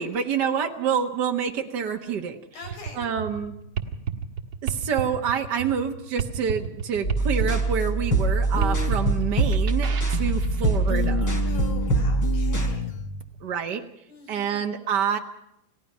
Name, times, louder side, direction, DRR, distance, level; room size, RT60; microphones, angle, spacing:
voice 1, 0.0-2.4 2.9-3.5 4.6-11.4 13.4-13.8 14.3-15.2, right 7 dB, 75° right, 4 dB, 0.9 m, -27 dB
voice 2, 2.5-3.1 11.4-13.0 14.1-14.8, left 3 dB, 85° left, 4 dB, 5.9 m, -43 dB
sound 1, 2.6-11.5, right 6 dB, 50° right, 1.7 m, -33 dB
sound 2, 7.0-12.7, right 3 dB, 30° left, 3.8 m, -23 dB
sound 3, 8.5-9.2 10.2-10.6 10.9-13.2, left 8 dB, 55° left, 1.5 m, -31 dB
30.0 x 17.0 x 5.6 m, 0.81 s
omnidirectional pair, 4.2 m